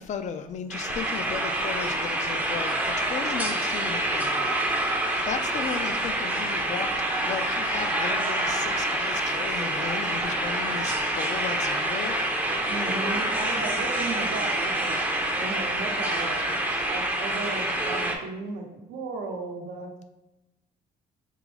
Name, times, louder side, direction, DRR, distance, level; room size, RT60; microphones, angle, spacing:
voice 1, 0.0-4.9 5.2-6.9 7.2-12.2, left 7 dB, 45° left, 9 dB, 0.4 m, -35 dB
sound 1, 0.7-18.1, right 1 dB, 10° right, 0.5 m, -27 dB
voice 2, 12.7-15.0 15.4-16.6 16.9-19.9, right 3 dB, 80° right, 2 dB, 0.8 m, -35 dB
3.7 x 3.0 x 3.2 m, 0.98 s
cardioid pair, 110°, 17 cm